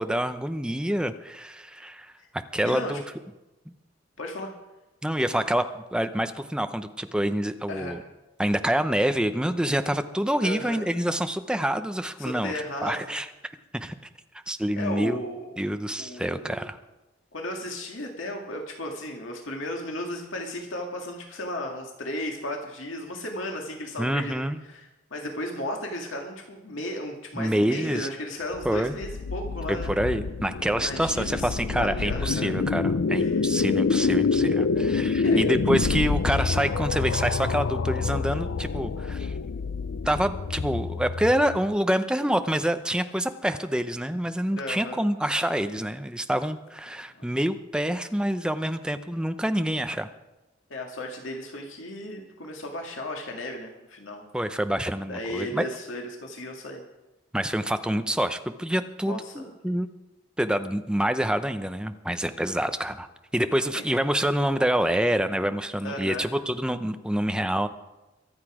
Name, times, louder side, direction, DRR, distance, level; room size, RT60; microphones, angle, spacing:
voice 1, 0.0-2.1 2.5-3.0 5.0-8.0 8.4-12.5 12.8-13.3 13.7-13.9 14.5-15.2 15.6-16.8 24.0-24.6 27.3-28.1 28.6-29.0 29.9-39.3 40.0-50.1 54.3-55.7 57.3-59.9 60.4-63.1 63.3-67.7, right 1 dB, 5° right, 9 dB, 0.7 m, -27 dB
voice 2, 2.6-3.0 4.2-4.5 7.7-8.0 10.4-10.9 12.2-13.2 14.8-15.6 16.0-16.7 17.3-29.9 30.8-32.6 33.1-33.4 35.2-35.4 44.5-45.1 47.0-47.1 50.7-54.2 55.1-56.8 59.0-59.5 63.7-63.8 65.8-66.3, left 1 dB, 90° left, 1 dB, 1.9 m, -35 dB
sound 1, 28.5-41.7, left 4 dB, 70° left, 0.5 m, -27 dB
23.5 x 8.2 x 4.9 m, 1.0 s
head